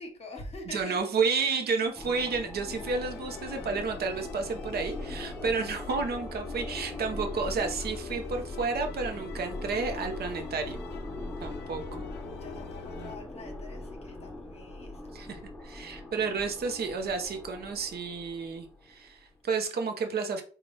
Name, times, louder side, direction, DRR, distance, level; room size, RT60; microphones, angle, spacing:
voice 1, 0.0-1.5 1.8-1.9 3.1-3.4 11.4-11.6 12.3-15.1 15.7-15.9, left 2 dB, 30° left, 1.2 m, -46 dB
voice 2, 0.7-10.8 11.4-12.1 13.0-13.1 15.1-20.4, right 4 dB, 50° right, 0.8 m, -31 dB
sound 1, 2.0-19.3, left 1 dB, 5° left, 0.6 m, -40 dB
sound 2, 2.7-13.2, left 8 dB, 60° left, 0.4 m, -46 dB
3.9 x 2.4 x 3.3 m
cardioid pair, 90°, 20 cm